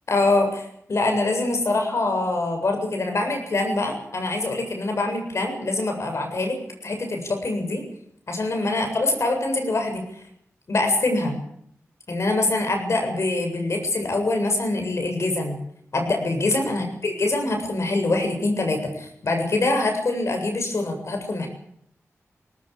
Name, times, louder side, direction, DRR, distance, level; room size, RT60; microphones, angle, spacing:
voice 1, 0.1-6.6 6.8-7.8 8.3-10.0 10.7-11.4 12.1-15.6 15.9-21.5, left 2 dB, 60° left, 4 dB, 7.5 m, -24 dB
19.5 x 19.5 x 8.7 m, 0.70 s
wide cardioid pair, 75°, 5 cm